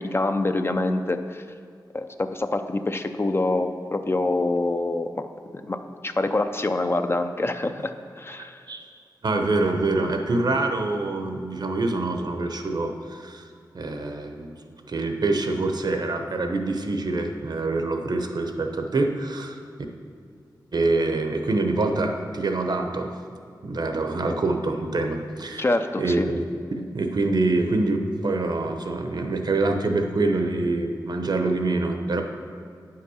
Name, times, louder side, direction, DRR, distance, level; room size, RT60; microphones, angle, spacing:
voice 1, 0.0-1.4 1.9-5.3 5.5-8.6 25.6-26.3, left 2 dB, 30° left, 7 dB, 0.5 m, -26 dB
voice 2, 9.2-13.5 13.7-19.6 20.7-23.1 23.6-25.6 26.0-26.4 26.7-32.2, right 2 dB, 65° right, 5 dB, 0.9 m, -25 dB
9.4 x 5.8 x 6.3 m, 2.3 s
wide cardioid pair, 80°, 8 cm